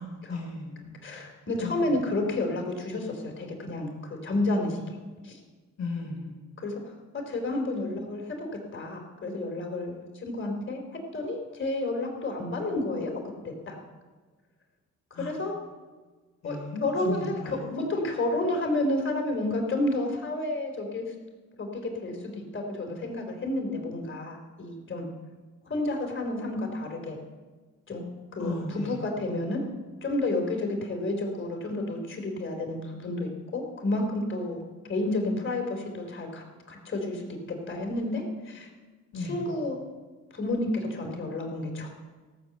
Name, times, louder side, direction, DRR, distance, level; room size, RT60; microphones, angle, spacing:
voice 1, 0.0-0.9 1.6-1.9 5.8-6.3 15.1-15.3 16.4-17.8 28.4-29.0 39.1-39.4, left 2 dB, 60° left, -1 dB, 4.4 m, -35 dB
voice 2, 1.0-5.0 5.2-5.4 6.6-6.8 7.1-13.8 15.2-15.5 16.4-21.1 21.6-25.1 25.7-27.2 27.9-28.0 28.3-29.6 30.0-37.2 37.5-38.7 39.1-39.8 40.3-41.9, left 2 dB, 40° left, 2 dB, 3.6 m, -31 dB
16.5 x 7.4 x 7.9 m, 1.4 s
cardioid pair, 90°, 30 cm